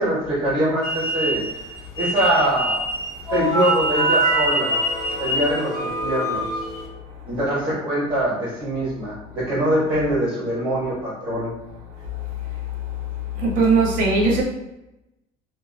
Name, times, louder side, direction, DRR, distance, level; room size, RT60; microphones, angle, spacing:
voice 1, 0.0-1.4 2.0-2.8 3.3-4.8 5.2-6.5 7.2-11.5, right 1 dB, 35° right, -8 dB, 1.2 m, -23 dB
sound 1, 0.8-6.8, equal, 60° left, 0.7 m, -26 dB
sound 2, 3.3-6.9, right 2 dB, 20° left, 0.5 m, -25 dB
voice 2, 13.3-14.4, right 3 dB, 55° right, -1 dB, 0.7 m, -19 dB
2.6 x 2.0 x 2.5 m, 0.92 s
cardioid pair, 125°, 16 cm